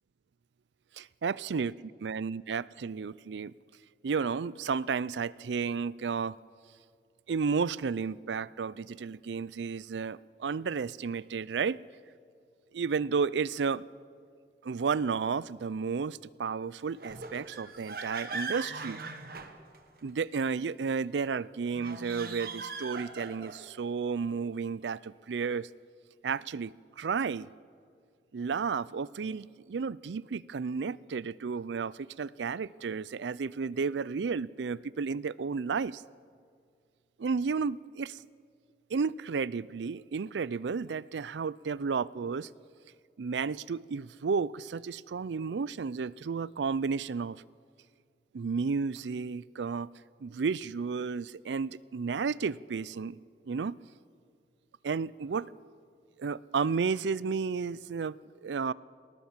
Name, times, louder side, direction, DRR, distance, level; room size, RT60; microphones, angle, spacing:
voice 1, 1.0-1.7 2.0-3.5 4.0-6.4 7.3-11.8 12.7-13.8 14.6-19.0 20.0-25.7 26.2-27.5 28.3-36.0 37.2-38.2 38.9-42.5 43.2-47.4 48.3-49.9 50.2-53.2 53.5-53.7 54.8-55.5 56.2-58.7, right 5 dB, 85° right, 21 dB, 0.4 m, -32 dB
sound 1, 17.0-20.1 21.7-23.7, right 3 dB, 55° right, 1.4 m, -40 dB
19.0 x 19.0 x 7.3 m, 2.1 s
head